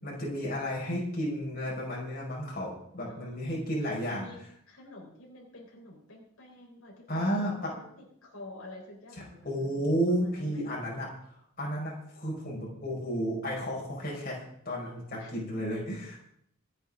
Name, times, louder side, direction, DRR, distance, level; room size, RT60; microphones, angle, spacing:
voice 1, 0.0-4.3 7.1-7.5 9.4-11.1 11.6-16.2, equal, 40° left, -3 dB, 5.0 m, -32 dB
voice 2, 3.1-3.6 4.0-4.4 4.7-10.6 15.2-15.3, left 1 dB, 75° left, -2 dB, 4.2 m, -48 dB
26.0 x 9.2 x 3.7 m, 0.71 s
head